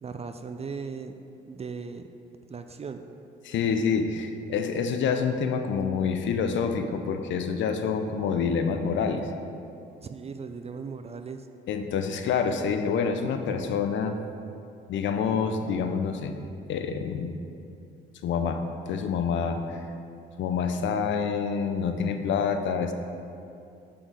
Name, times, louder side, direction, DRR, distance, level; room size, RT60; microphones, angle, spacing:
voice 1, 0.0-1.1 1.4-2.1 2.5-3.1 10.0-11.5, right 5 dB, 30° right, 7 dB, 0.3 m, -37 dB
voice 2, 3.4-9.3 11.7-14.2 14.9-16.3 16.7-17.3 18.2-19.8 20.4-22.9, left 6 dB, 70° left, 7 dB, 0.5 m, -27 dB
5.9 x 4.0 x 4.8 m, 2.6 s
supercardioid pair, 70°, 20 cm